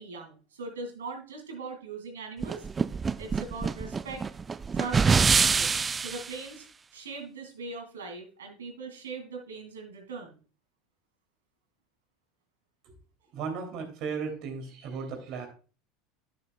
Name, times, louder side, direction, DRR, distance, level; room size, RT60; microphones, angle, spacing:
voice 1, 0.0-2.7 3.2-4.2 4.7-5.7 6.0-6.7 6.9-10.4, right 4 dB, 90° right, 4 dB, 2.3 m, -40 dB
sound 1, 2.4-6.3, right 5 dB, 25° right, 0.3 m, -25 dB
voice 2, 13.3-15.5, right 5 dB, 60° right, 4 dB, 2.8 m, -35 dB
10.5 x 6.8 x 2.3 m, 0.37 s
hypercardioid pair, 85°, 0 cm